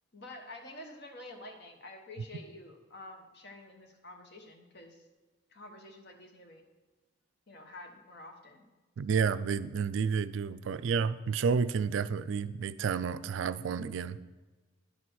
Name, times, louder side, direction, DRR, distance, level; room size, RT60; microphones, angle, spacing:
voice 1, 0.1-5.0 5.5-6.6 7.5-8.6, left 2 dB, 50° left, 4 dB, 1.2 m, -49 dB
voice 2, 9.0-14.2, right 6 dB, 65° right, 15 dB, 0.3 m, -30 dB
10.5 x 4.3 x 6.2 m, 1.3 s
head